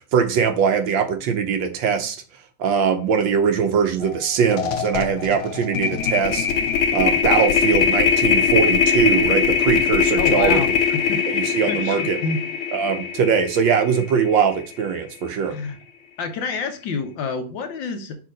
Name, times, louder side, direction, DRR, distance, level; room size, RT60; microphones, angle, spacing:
voice 1, 0.1-2.2 2.6-6.5 6.9-10.6 11.3-12.2 12.7-15.5, right 7 dB, 70° right, 6 dB, 1.4 m, -21 dB
sound 1, 4.0-4.2 4.5-14.7, left 7 dB, 80° left, 1.7 m, -21 dB
voice 2, 10.1-11.2 11.7-12.4 15.5-15.8 16.2-18.2, left 4 dB, 65° left, 6 dB, 1.5 m, -28 dB
5.6 x 3.6 x 5.0 m, 0.36 s
omnidirectional pair, 2.3 m